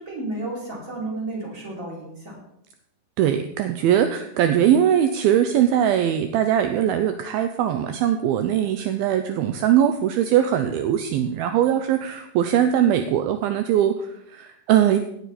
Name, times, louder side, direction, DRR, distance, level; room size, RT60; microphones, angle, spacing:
voice 1, 0.0-2.4, right 2 dB, 20° right, -3 dB, 3.9 m, -32 dB
voice 2, 3.2-15.0, right 10 dB, 80° right, 8 dB, 2.2 m, -21 dB
17.5 x 9.4 x 4.3 m, 0.78 s
omnidirectional pair, 5.0 m